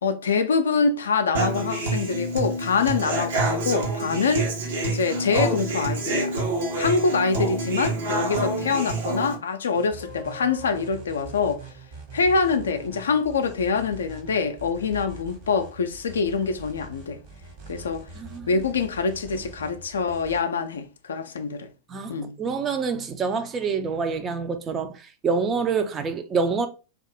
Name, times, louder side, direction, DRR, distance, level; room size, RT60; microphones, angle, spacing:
voice 1, 0.0-4.5 4.8-6.3 6.8-11.7 12.1-17.2 17.7-18.1 18.5-21.7 22.1-22.4, left 5 dB, 70° left, 0.4 m, -25 dB
Human voice / Acoustic guitar, 1.3-9.3, right 2 dB, 60° right, 0.9 m, -27 dB
sound 1, 9.7-20.4, right 3 dB, 45° right, 1.2 m, -43 dB
sound 2, 10.0-11.6, left 4 dB, 85° right, 1.1 m, -45 dB
voice 2, 18.2-18.5 21.9-26.7, right 5 dB, 25° right, 0.4 m, -27 dB
2.6 x 2.3 x 3.5 m
figure-of-eight pair, 90°, 0 cm